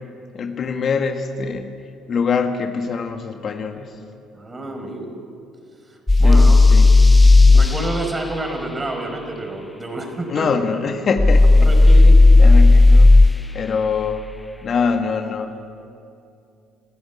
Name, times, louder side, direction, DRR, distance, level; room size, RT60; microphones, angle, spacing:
voice 1, 0.3-1.7 2.1-3.9 6.2-7.0 10.3-13.1 13.5-14.2 14.6-15.6, left 5 dB, 50° left, 6 dB, 1.6 m, -24 dB
voice 2, 4.3-5.1 5.9-6.6 7.5-10.5 11.6-12.2, right 2 dB, 25° right, 4 dB, 4.8 m, -29 dB
sound 1, 6.1-7.7 11.2-13.3, left 2 dB, 15° left, 0.5 m, -10 dB
24.5 x 14.5 x 8.4 m, 2.6 s
hypercardioid pair, 55°, 0 cm